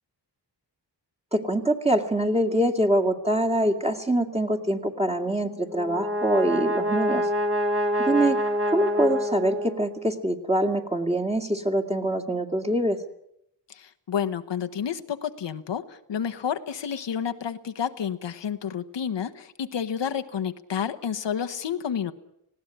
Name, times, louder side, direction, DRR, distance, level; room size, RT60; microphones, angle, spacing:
voice 1, 1.3-7.3 8.0-8.4 8.7-13.0, right 1 dB, 15° right, 4 dB, 2.3 m, -24 dB
Brass instrument, 5.6-10.0, equal, 30° right, 3.1 m, -26 dB
voice 2, 13.8-22.1, left 8 dB, 80° left, 9 dB, 1.2 m, -30 dB
19.5 x 16.5 x 10.0 m, 0.78 s
wide cardioid pair, 80°, 43 cm